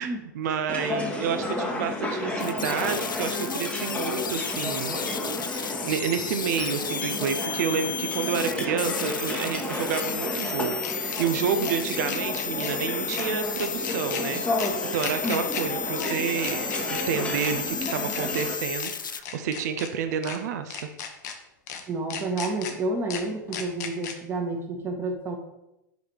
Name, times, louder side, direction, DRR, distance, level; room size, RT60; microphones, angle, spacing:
voice 1, 0.0-5.0 5.5-20.9, right 7 dB, 55° right, 8 dB, 0.6 m, -29 dB
sound 1, 0.7-18.5, left 1 dB, 10° left, 1.0 m, -32 dB
sound 2, 2.4-19.2, left 7 dB, 80° left, 0.4 m, -33 dB
sound 3, 6.2-6.3 8.7-10.5 10.8-11.2 11.6-11.8 12.1-12.7 13.1-13.2 13.6-14.2 14.6-14.7 15.0-15.6 16.0-16.1 16.4-17.0 17.4-17.5 17.8-18.4 18.8-18.9 19.2-19.9 20.2-20.4 20.7-21.3 21.7-21.8 22.1-22.7 23.1-23.2 23.5-24.1, left 7 dB, 55° left, 0.9 m, -36 dB
voice 2, 21.9-25.4, right 2 dB, 20° right, 2 dB, 1.3 m, -30 dB
5.2 x 4.9 x 4.5 m, 0.89 s
figure-of-eight pair, 95°, 11 cm